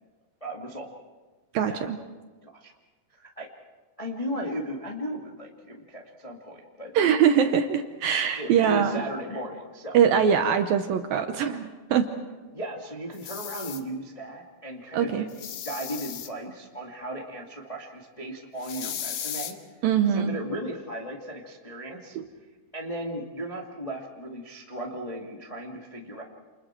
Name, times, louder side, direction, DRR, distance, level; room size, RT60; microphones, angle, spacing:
voice 1, 0.4-0.9 1.6-1.8 2.4-2.7 3.1-3.5 4.0-6.9 8.4-10.0 12.5-15.2 15.6-19.6 20.1-22.2 22.7-26.2, right 1 dB, 20° left, -1 dB, 0.8 m, -36 dB
voice 2, 1.5-2.0 6.9-9.0 9.9-12.1 14.9-15.3 19.8-20.4 22.2-22.3, right 8 dB, 70° right, 6 dB, 2.3 m, -23 dB
sound 1, 13.1-13.8 15.3-16.3 18.6-19.5, left 9 dB, 65° left, 2.6 m, -36 dB
29.5 x 29.0 x 4.6 m, 1.3 s
omnidirectional pair, 5.0 m